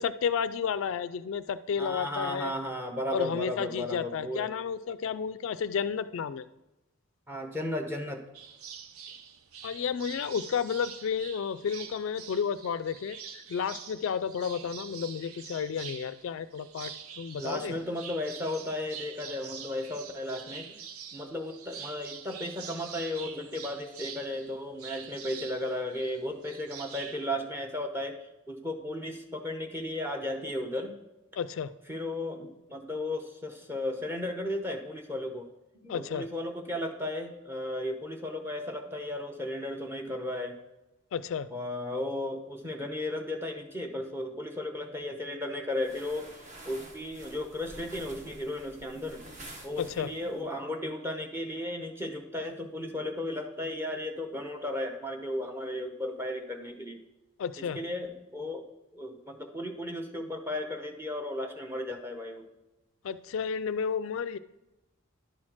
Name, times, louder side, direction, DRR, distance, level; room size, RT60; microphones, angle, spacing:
voice 1, 0.0-2.5 3.1-6.5 9.6-17.7 31.4-31.7 35.9-36.3 41.1-41.5 49.8-50.1 57.4-57.8 63.0-64.4, left 7 dB, 65° left, 14 dB, 0.3 m, -32 dB
voice 2, 1.8-4.5 7.3-8.2 17.4-20.8 21.1-28.2 28.5-30.9 31.9-35.5 35.8-40.5 41.5-46.3 46.6-49.2 49.6-57.0 57.6-58.6 58.9-62.4, left 1 dB, 10° right, 4 dB, 0.8 m, -35 dB
sound 1, 8.3-27.3, right 7 dB, 80° right, 0.6 m, -45 dB
sound 2, 45.8-50.4, right 1 dB, 35° right, 1.0 m, -48 dB
11.0 x 4.3 x 6.0 m, 0.99 s
head